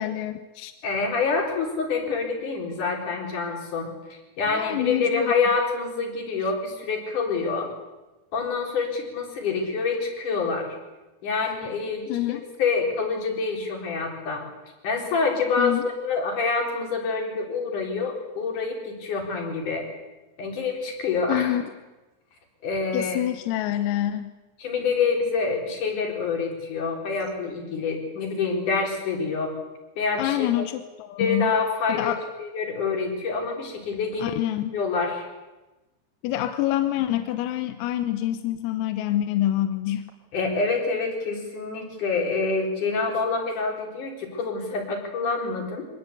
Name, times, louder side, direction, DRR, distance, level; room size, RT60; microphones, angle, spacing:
voice 1, 0.0-0.7 4.5-5.3 12.1-12.5 15.6-15.9 21.3-21.6 22.9-24.3 30.2-31.5 32.0-32.2 34.2-34.8 36.2-40.1, left 13 dB, 90° left, 9 dB, 3.7 m, -26 dB
voice 2, 0.8-7.7 8.3-10.8 11.2-14.5 14.8-19.9 20.4-21.6 22.6-23.2 24.6-29.5 30.0-30.5 31.2-32.1 32.4-34.3 34.7-35.3 40.3-45.9, left 4 dB, 40° left, 1 dB, 5.1 m, -27 dB
25.0 x 19.5 x 8.4 m, 1.1 s
omnidirectional pair, 6.0 m